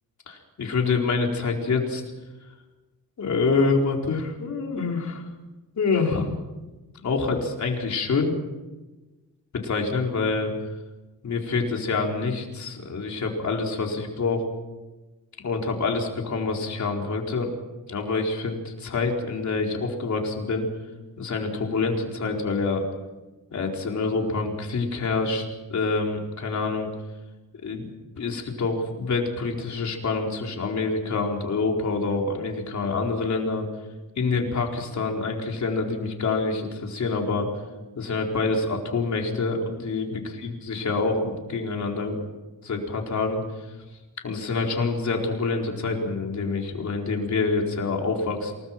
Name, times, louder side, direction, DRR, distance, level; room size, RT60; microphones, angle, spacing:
voice 1, 0.3-2.0 3.2-5.3 5.8-6.3 7.0-8.3 9.5-10.5 11.2-14.4 15.4-17.5 17.9-20.7 21.2-22.8 23.5-26.9 27.6-27.9 28.2-33.7 34.2-37.5 37.9-42.2 42.6-43.4 44.2-48.5, left 4 dB, 50° left, 1 dB, 4.4 m, -26 dB
28.5 x 19.5 x 6.0 m, 1.1 s
wide cardioid pair, 175°, 35 cm